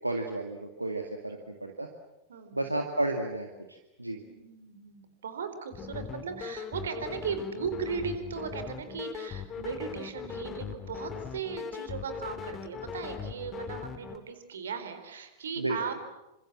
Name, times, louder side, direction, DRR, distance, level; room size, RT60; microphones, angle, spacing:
voice 1, 0.0-1.9 2.5-4.2 15.6-15.8, right 2 dB, 85° right, 3 dB, 2.1 m, -32 dB
voice 2, 2.3-2.7 4.2-16.0, right 6 dB, 65° right, 9 dB, 4.0 m, -37 dB
sound 1, 5.7-14.2, left 7 dB, 25° left, 2.4 m, -39 dB
28.5 x 26.0 x 7.5 m, 0.98 s
figure-of-eight pair, 90°, 0 cm